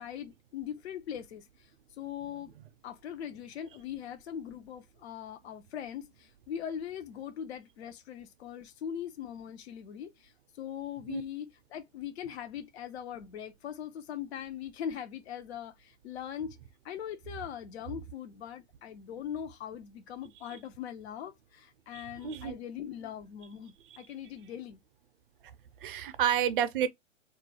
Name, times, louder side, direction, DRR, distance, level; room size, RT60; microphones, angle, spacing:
voice 1, 0.0-1.7 2.0-2.5 2.8-16.6 16.8-24.8, left 9 dB, 55° left, 0.6 m, -41 dB
voice 2, 21.9-22.5 25.8-26.9, right 9 dB, 45° right, 0.5 m, -30 dB
2.3 x 2.1 x 3.2 m
hypercardioid pair, 125°, 39 cm